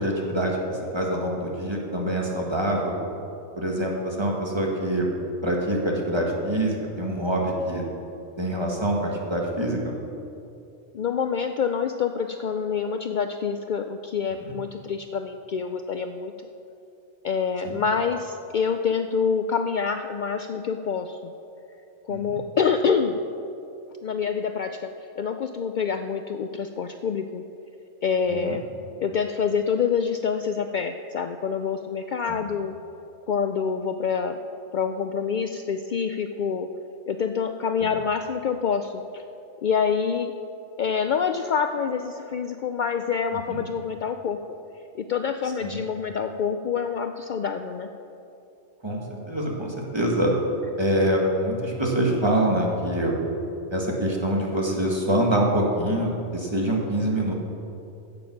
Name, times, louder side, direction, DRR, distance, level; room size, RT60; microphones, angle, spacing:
voice 1, 0.0-3.0 3.5-5.1 5.4-7.8 8.4-9.9 14.4-14.5 17.6-17.8 22.1-22.4 28.3-28.6 32.3-32.4 37.8-37.9 43.5-43.6 45.6-45.8 48.8-50.3 50.8-53.2 53.7-57.3, right 1 dB, 20° right, -1 dB, 1.7 m, -25 dB
voice 2, 10.9-16.3 17.2-21.3 22.1-23.2 24.0-24.9 25.2-27.4 28.0-28.6 29.0-32.8 33.3-34.4 34.7-36.7 37.1-39.2 39.6-40.3 40.8-44.4 44.9-47.9, left 6 dB, 75° left, 7 dB, 0.4 m, -26 dB
15.5 x 6.9 x 6.0 m, 2.7 s
omnidirectional pair, 1.3 m